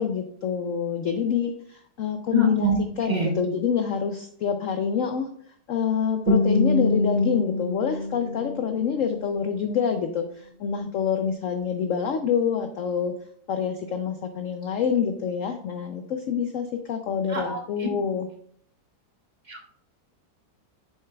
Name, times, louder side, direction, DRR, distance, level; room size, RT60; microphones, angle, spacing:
voice 1, 0.0-5.3 5.7-13.1 13.5-18.3, left 7 dB, 80° left, 7 dB, 0.7 m, -26 dB
voice 2, 2.3-2.8 3.1-3.3 17.3-17.6 19.5-19.7, right 1 dB, 30° right, 0 dB, 1.1 m, -25 dB
Guitar, 6.3-9.3, left 2 dB, 80° right, 2.4 m, -25 dB
7.8 x 6.6 x 2.2 m, 0.63 s
omnidirectional pair, 1.9 m